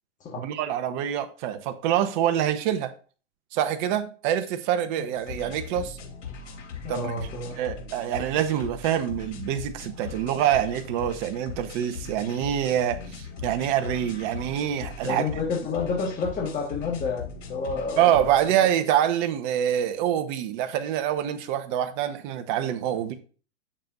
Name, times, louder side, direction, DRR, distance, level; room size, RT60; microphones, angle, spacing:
voice 1, 0.4-2.9 3.5-6.0 6.9-7.1 7.6-15.3 18.0-23.1, right 10 dB, 40° right, 1.0 m, -25 dB
sound 1, 5.2-18.4, left 5 dB, 70° left, 3.0 m, -39 dB
voice 2, 6.8-7.6 15.0-18.1, left 4 dB, 20° left, 1.6 m, -29 dB
8.8 x 7.0 x 2.6 m
hypercardioid pair, 125°, 37 cm